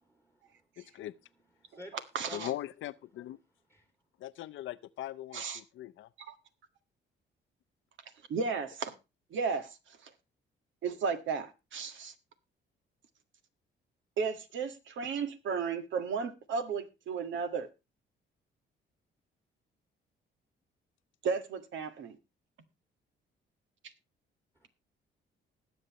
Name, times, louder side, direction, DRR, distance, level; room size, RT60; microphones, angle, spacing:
voice 1, 0.2-0.7 1.6-2.0 2.2-2.5 3.7-3.9 24.5-24.7, right 1 dB, 15° right, 2.6 m, -49 dB
voice 2, 0.8-1.1 2.3-3.4 4.2-6.1, left 14 dB, 80° left, 0.7 m, -40 dB
voice 3, 2.1-2.5 5.3-5.6 6.3-6.4 8.3-8.9 9.3-9.8 10.0-10.1 10.8-12.1 14.2-17.7 21.2-22.2, right 5 dB, 75° right, 1.8 m, -34 dB
20.0 x 8.0 x 3.0 m
cardioid pair, 90°, 20 cm